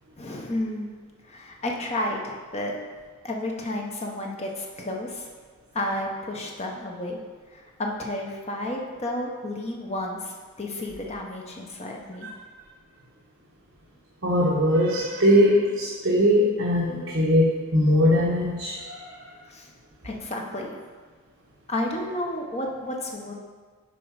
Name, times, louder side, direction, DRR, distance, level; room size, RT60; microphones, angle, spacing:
voice 1, 0.2-0.9 1.3-2.8 3.2-5.2 5.7-7.2 7.5-12.3 19.5-19.7 20.0-20.8 21.7-23.3, left 1 dB, 30° left, 0 dB, 0.8 m, -31 dB
voice 2, 14.2-19.2, equal, 60° right, -5 dB, 1.0 m, -21 dB
7.2 x 4.7 x 4.8 m, 1.5 s
head